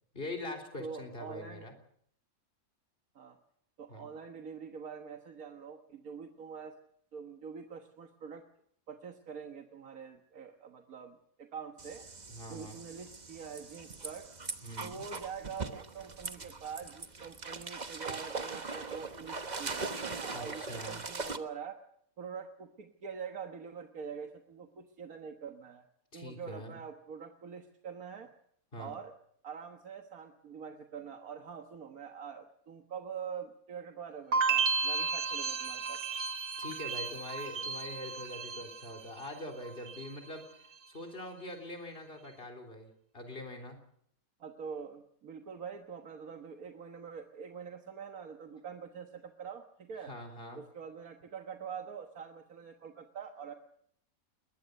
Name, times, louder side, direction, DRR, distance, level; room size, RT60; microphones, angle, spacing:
voice 1, 0.1-1.7 3.9-4.1 12.3-12.8 14.6-15.0 20.3-21.0 26.1-26.8 28.7-28.9 36.6-40.4 40.9-43.8 50.0-50.6, left 1 dB, 40° left, 3 dB, 3.9 m, -43 dB
voice 2, 0.8-1.6 3.2-3.4 3.8-6.8 7.1-8.4 8.9-12.1 12.5-14.3 14.8-21.8 22.2-25.9 26.1-28.3 28.8-29.1 29.4-36.0 44.4-50.1 50.6-53.5, right 6 dB, 85° right, 4 dB, 1.8 m, -45 dB
sound 1, 11.8-21.4, right 3 dB, 35° right, 1.2 m, -41 dB
sound 2, 34.3-39.3 39.6-40.3, right 5 dB, 60° right, 1.4 m, -33 dB
21.0 x 20.5 x 6.6 m, 0.68 s
omnidirectional pair, 1.5 m